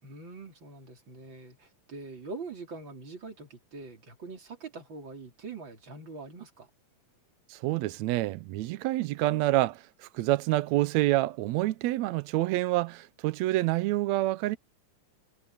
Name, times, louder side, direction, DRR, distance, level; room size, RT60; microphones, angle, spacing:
voice 1, 0.0-6.7, right 3 dB, 35° right, 4.0 m, -43 dB
voice 2, 7.5-14.6, right 17 dB, 90° right, 1.5 m, -27 dB
omnidirectional pair, 4.0 m